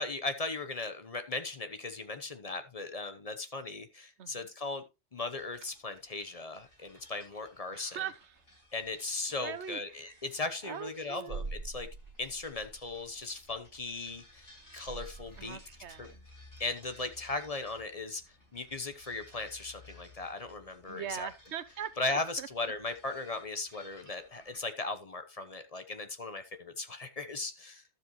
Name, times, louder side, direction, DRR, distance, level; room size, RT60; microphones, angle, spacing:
voice 1, 0.0-4.8 5.1-8.0 8.7-11.9 12.2-15.6 16.0-16.1 16.6-18.2 18.5-21.3 22.0-27.8, left 3 dB, 35° left, 0.9 m, -37 dB
voice 2, 4.2-4.5 7.7-8.3 9.4-10.2 10.6-11.4 15.4-16.3 20.9-22.5, right 9 dB, 85° right, 1.1 m, -42 dB
sound 1, 5.4-24.6, left 1 dB, 60° left, 5.8 m, -59 dB
sound 2, 5.5-6.3 6.8-7.0 7.3-7.4 8.2-8.5 8.8-9.0 9.3-9.4 11.1-17.0 17.3-17.5 17.7-17.8 21.5-21.6, right 3 dB, 45° right, 0.9 m, -47 dB
12.5 x 7.3 x 3.0 m
omnidirectional pair, 1.1 m